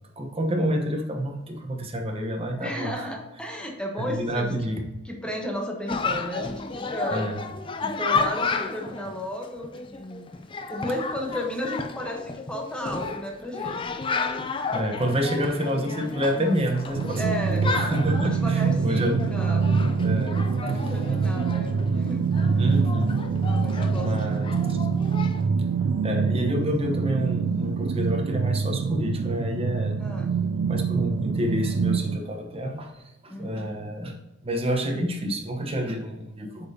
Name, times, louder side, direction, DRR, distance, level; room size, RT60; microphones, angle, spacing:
voice 1, 0.2-3.1 4.0-4.8 7.1-7.4 14.7-19.3 20.0-20.4 22.6-23.2 23.9-24.8 25.7-30.0 30.7-32.9 33.2-34.1 34.4-36.7, equal, 30° right, 2 dB, 1.0 m, -28 dB
voice 2, 2.6-4.5 5.0-7.3 7.8-10.3 10.7-14.1 17.2-17.7 18.2-19.7 20.6-22.7 23.4-24.3 30.0-30.3 33.3-33.8, equal, 5° left, 1 dB, 1.1 m, -34 dB
Chatter, 5.9-25.5, left 4 dB, 25° left, 0.4 m, -32 dB
sound 1, 16.9-32.2, right 5 dB, 80° right, 0.4 m, -25 dB
8.1 x 5.2 x 2.8 m, 1.0 s
head